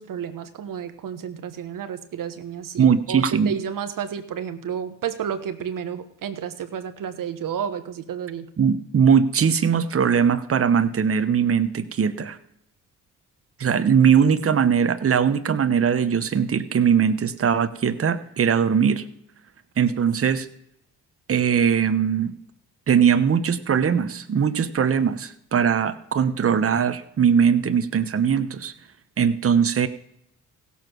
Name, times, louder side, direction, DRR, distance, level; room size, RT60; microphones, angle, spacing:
voice 1, 0.0-8.4, right 8 dB, 65° right, 10 dB, 1.3 m, -31 dB
voice 2, 2.8-3.6 8.6-12.4 13.6-19.0 19.8-20.5 21.3-22.3 22.9-28.7 29.2-29.9, right 7 dB, 40° right, 12 dB, 1.1 m, -20 dB
16.0 x 7.0 x 6.2 m, 0.74 s
supercardioid pair, 60°, 35 cm